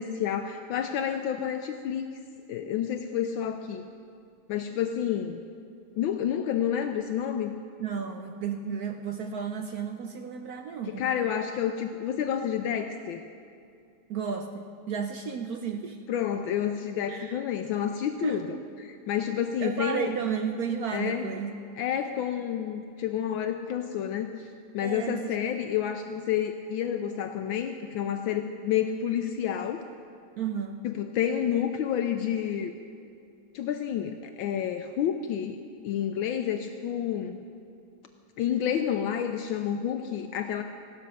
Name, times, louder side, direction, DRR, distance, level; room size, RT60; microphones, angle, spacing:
voice 1, 0.0-2.1 2.5-3.8 4.5-5.4 6.0-7.5 11.0-13.2 16.1-20.1 20.9-21.3 21.8-24.5 24.7-29.9 30.8-32.7 33.5-35.6 35.8-37.4 38.4-40.6, left 9 dB, 75° left, 6 dB, 1.3 m, -29 dB
voice 2, 7.8-11.0 14.1-16.0 17.1-17.4 18.2-18.6 19.6-21.5 24.8-25.3 30.4-30.9, right 6 dB, 75° right, 6 dB, 0.8 m, -33 dB
16.0 x 12.5 x 5.6 m, 2.4 s
omnidirectional pair, 2.4 m